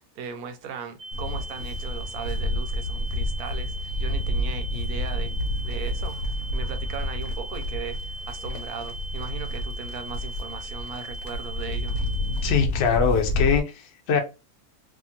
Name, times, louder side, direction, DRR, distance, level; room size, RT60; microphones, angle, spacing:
voice 1, 0.2-5.3 5.6-12.0, right 6 dB, 85° right, 1.1 m, -38 dB
sound 1, 1.0-12.5, right 1 dB, 60° right, 0.8 m, -40 dB
Livestock farm animals working animals, 1.1-13.6, left 1 dB, 80° left, 1.1 m, -29 dB
voice 2, 12.4-14.2, left 6 dB, 60° left, 0.7 m, -23 dB
2.8 x 2.4 x 2.7 m
omnidirectional pair, 1.5 m